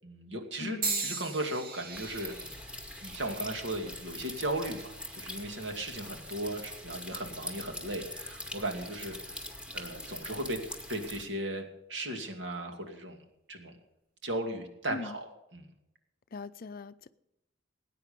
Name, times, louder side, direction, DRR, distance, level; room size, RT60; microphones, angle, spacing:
voice 1, 0.0-2.4 3.0-9.2 9.7-10.6 10.9-13.2 13.5-13.8 14.2-15.7, right 1 dB, 70° right, 4 dB, 2.5 m, -36 dB
voice 2, 0.6-1.2 14.9-15.2 16.3-17.1, left 4 dB, 50° left, 14 dB, 0.5 m, -41 dB
sound 1, 0.8-5.0 5.7-6.1 7.1-7.2, right 4 dB, 50° right, 2.1 m, -39 dB
sound 2, 1.9-11.2, left 1 dB, 5° right, 2.0 m, -43 dB
19.0 x 9.3 x 5.3 m, 0.88 s
head